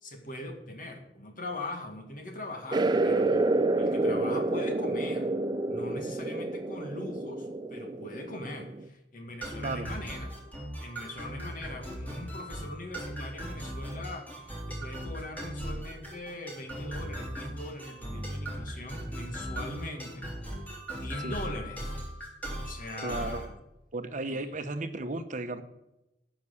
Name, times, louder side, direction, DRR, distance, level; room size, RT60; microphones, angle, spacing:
voice 1, 0.0-5.3 5.7-10.3 10.8-20.3 20.9-22.0 22.6-23.5 24.3-24.5, left 1 dB, 50° left, 4 dB, 2.0 m, -41 dB
sound 1, 2.7-8.9, right 2 dB, 25° right, 0.5 m, -29 dB
sound 2, 9.4-23.5, equal, 10° left, 3.6 m, -38 dB
voice 2, 23.0-23.5 23.9-25.6, right 2 dB, 45° right, 9 dB, 0.9 m, -34 dB
9.7 x 6.1 x 8.4 m, 0.91 s
head